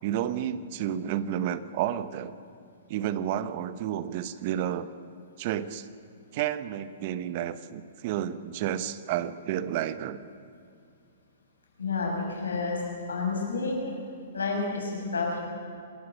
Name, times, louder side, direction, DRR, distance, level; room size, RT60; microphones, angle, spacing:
voice 1, 0.0-2.3 2.9-4.9 5.4-5.9 6.3-10.2, right 10 dB, 45° right, 14 dB, 1.1 m, -31 dB
voice 2, 11.8-12.8 13.1-13.8 14.3-15.4, left 4 dB, 85° left, 0 dB, 6.6 m, -29 dB
26.5 x 13.0 x 8.4 m, 2.4 s
hypercardioid pair, 125°, 0 cm